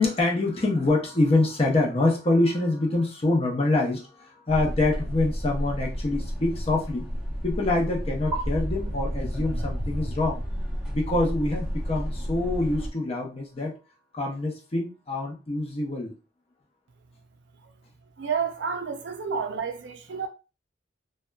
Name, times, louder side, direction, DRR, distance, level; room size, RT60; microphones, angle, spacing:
voice 1, 0.0-7.1 7.4-10.4 10.9-13.7 14.1-16.1, left 2 dB, 30° left, 0.6 m, -25 dB
sound 1, 4.5-12.9, equal, 5° right, 0.7 m, -31 dB
voice 2, 18.2-20.3, right 6 dB, 65° right, 0.4 m, -30 dB
2.7 x 2.2 x 2.2 m
head